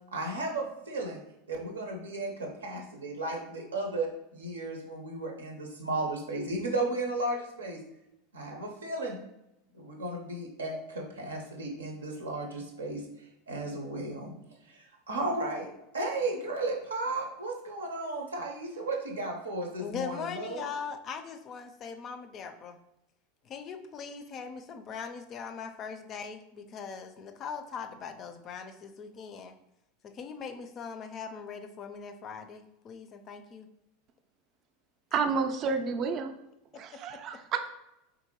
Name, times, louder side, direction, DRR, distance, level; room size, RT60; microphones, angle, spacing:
voice 1, 0.1-1.2 1.5-7.8 8.3-9.2 9.7-13.0 13.5-14.3 14.7-20.6, right 2 dB, 90° right, 1 dB, 0.7 m, -34 dB
voice 2, 19.8-22.8 23.4-29.6 30.0-33.7 37.1-37.2, left 6 dB, 40° left, 7 dB, 0.4 m, -40 dB
voice 3, 35.1-36.3 36.7-37.7, right 5 dB, 45° right, 7 dB, 0.4 m, -30 dB
3.6 x 2.6 x 2.9 m, 0.87 s
hypercardioid pair, 90°, 0 cm